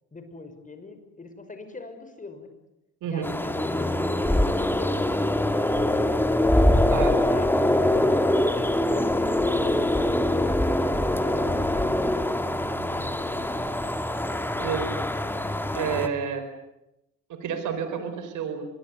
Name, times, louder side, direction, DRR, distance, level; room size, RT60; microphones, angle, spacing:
voice 1, 0.1-2.5 3.1-5.7 6.5-8.5 8.9-13.5, left 3 dB, 25° left, 8 dB, 5.6 m, -43 dB
sound 1, 3.2-16.1, left 1 dB, 5° left, 2.3 m, -24 dB
voice 2, 14.6-14.9 15.7-16.5 17.3-18.7, right 7 dB, 80° right, 8 dB, 4.8 m, -30 dB
25.0 x 22.0 x 9.6 m, 0.90 s
cardioid pair, 90°, 30 cm